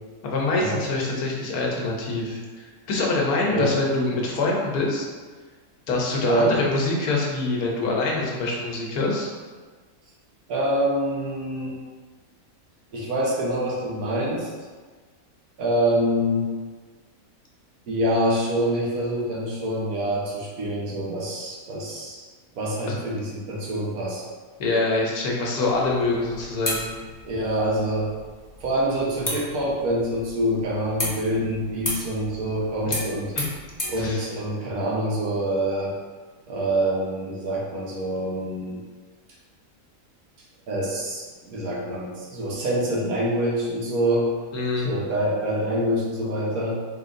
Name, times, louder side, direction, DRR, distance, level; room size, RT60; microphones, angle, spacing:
voice 1, 0.2-5.1 5.9-9.3 22.9-23.0 24.6-26.9 32.9-33.0 33.3-33.4 34.0-34.2 44.5-44.9, left 2 dB, 85° left, -2 dB, 1.3 m, -25 dB
voice 2, 6.2-6.5 10.5-11.8 12.9-14.5 15.6-16.5 17.9-22.3 22.5-24.2 27.2-28.1 28.6-33.3 33.9-35.9 36.5-38.8 40.7-44.3 44.8-46.8, right 1 dB, 75° right, -5 dB, 1.4 m, -25 dB
sound 1, 25.6-34.0, left 1 dB, 15° left, 0.6 m, -34 dB
4.3 x 3.4 x 2.5 m, 1.4 s
omnidirectional pair, 1.6 m